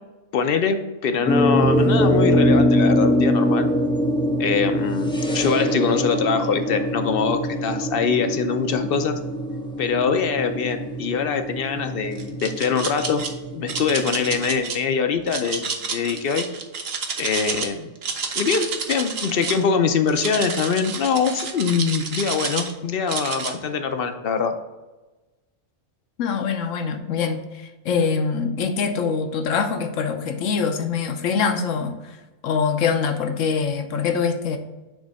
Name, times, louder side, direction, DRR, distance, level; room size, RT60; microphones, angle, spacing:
voice 1, 0.3-3.7 4.4-9.2 9.8-13.2 13.5-16.5 17.2-17.9 18.3-24.6, left 6 dB, 60° left, 7 dB, 0.7 m, -23 dB
sound 1, 1.3-14.6, equal, 5° left, 0.4 m, -23 dB
sound 2, 12.2-13.3 13.7-14.8 15.3-17.7 18.0-19.6 20.1-22.7 23.1-23.5, right 5 dB, 55° right, 0.9 m, -29 dB
voice 2, 26.2-32.2 32.4-34.6, left 5 dB, 75° left, 6 dB, 1.1 m, -24 dB
6.9 x 3.2 x 5.2 m, 1.1 s
omnidirectional pair, 1.3 m